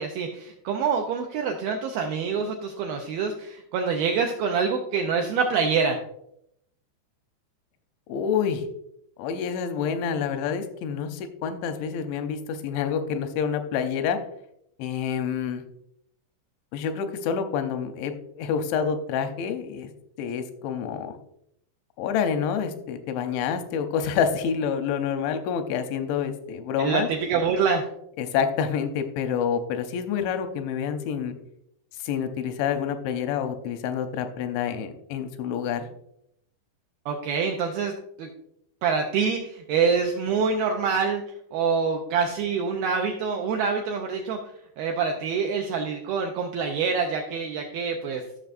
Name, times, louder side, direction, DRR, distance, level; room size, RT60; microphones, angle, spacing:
voice 1, 0.0-6.0 26.8-27.9 37.1-37.9 38.2-38.3 38.8-41.2 41.5-44.4 44.8-48.4, right 5 dB, 85° right, 2 dB, 2.1 m, -26 dB
voice 2, 8.1-8.7 9.2-14.2 14.8-15.6 16.7-19.9 20.2-21.2 22.0-27.1 28.2-31.4 32.0-35.9, left 7 dB, 85° left, 8 dB, 3.1 m, -28 dB
14.5 x 6.1 x 2.6 m, 0.75 s
omnidirectional pair, 5.2 m